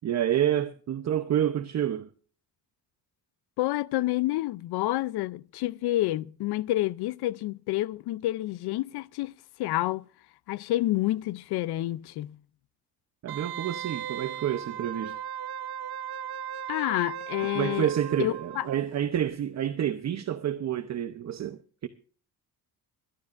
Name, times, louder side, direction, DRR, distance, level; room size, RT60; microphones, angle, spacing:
voice 1, 0.0-2.1 13.2-15.2 17.5-21.9, right 10 dB, 45° right, 0.8 m, -28 dB
voice 2, 3.6-9.3 9.6-10.0 10.5-12.4 16.7-17.9 18.2-18.7, left 16 dB, 85° left, 0.6 m, -29 dB
Wind instrument woodwind instrument, 13.3-18.8 19.1-19.2, right 9 dB, 80° right, 1.0 m, -37 dB
23.0 x 12.0 x 2.6 m
cardioid pair, 120°, 38 cm